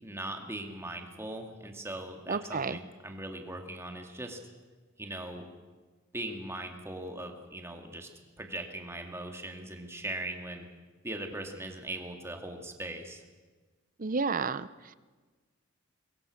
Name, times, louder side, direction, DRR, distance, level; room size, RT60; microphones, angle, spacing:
voice 1, 0.0-4.4 5.0-5.4 6.1-8.1 8.4-10.7 11.0-13.2, right 1 dB, 15° right, 3 dB, 2.3 m, -40 dB
voice 2, 2.3-2.8 14.0-14.9, right 4 dB, 40° right, 15 dB, 0.6 m, -31 dB
22.5 x 22.5 x 6.5 m, 1.3 s
head